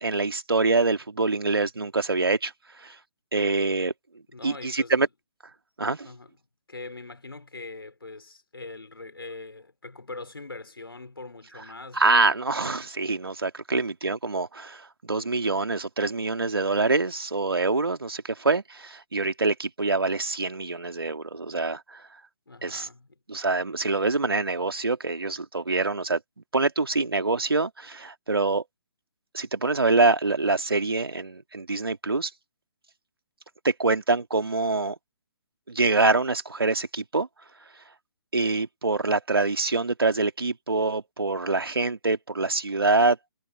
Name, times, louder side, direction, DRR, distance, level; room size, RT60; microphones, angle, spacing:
voice 1, 0.0-2.5 2.8-3.0 3.3-3.9 4.4-5.1 5.8-6.1 11.9-22.0 22.6-22.9 23.3-26.2 26.5-28.6 29.3-32.3 33.6-35.0 35.7-37.3 38.3-43.2, right 3 dB, 75° right, 2.5 m, -25 dB
voice 2, 4.3-5.1 6.0-6.3 6.7-12.3 13.7-13.9 22.5-23.1, left 3 dB, 75° left, 4.7 m, -42 dB
figure-of-eight pair, 135°, 13 cm